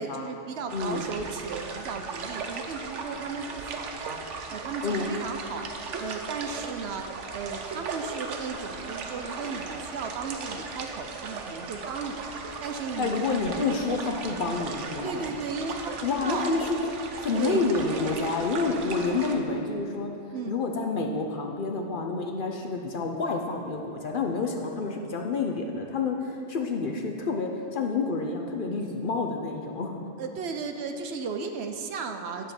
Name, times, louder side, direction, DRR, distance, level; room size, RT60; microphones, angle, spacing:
voice 1, 0.0-4.2 4.5-5.7 6.0-7.1 7.3-12.2 12.6-13.2 15.0-16.5 17.4-17.7 20.3-20.6 30.2-32.5, right 5 dB, 65° right, 5 dB, 0.8 m, -35 dB
voice 2, 0.7-1.1 4.8-5.1 13.0-15.3 16.0-20.1 20.5-30.0, left 3 dB, 55° left, 2 dB, 0.7 m, -29 dB
sound 1, 0.7-19.3, right 4 dB, 85° right, 1.1 m, -37 dB
10.5 x 3.7 x 7.0 m, 2.7 s
omnidirectional pair, 1.2 m